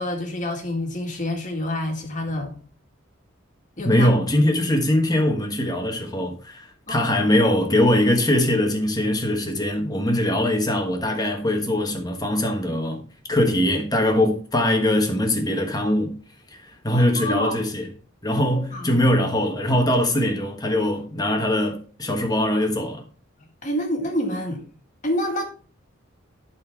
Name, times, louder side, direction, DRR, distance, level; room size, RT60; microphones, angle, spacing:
voice 1, 0.0-2.6 3.8-4.1 6.9-7.1 16.9-17.6 18.7-19.0 23.6-24.6 25.0-25.4, left 1 dB, 40° left, 2.0 m, -27 dB
voice 2, 3.8-13.0 13.3-16.2 16.8-17.9 18.2-23.0, left 1 dB, 20° left, 1.4 m, -22 dB
12.0 x 4.4 x 4.6 m
head